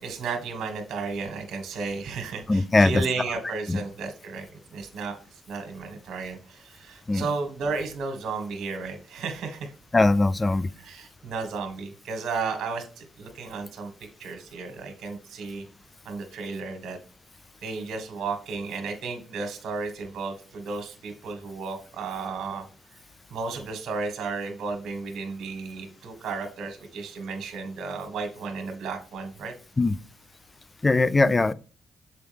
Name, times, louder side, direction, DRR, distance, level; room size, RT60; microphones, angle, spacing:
voice 1, 0.0-4.5 4.7-5.2 5.5-9.7 10.8-13.9 14.2-15.6 16.0-17.0 17.6-22.6 23.3-29.5, right 4 dB, 70° right, 1.6 m, -33 dB
voice 2, 2.5-3.0 3.7-3.8 7.1-7.3 9.9-10.7 29.8-30.0 30.8-31.5, left 2 dB, 20° left, 0.3 m, -20 dB
6.8 x 4.7 x 3.5 m
cardioid pair, 90°, 0 cm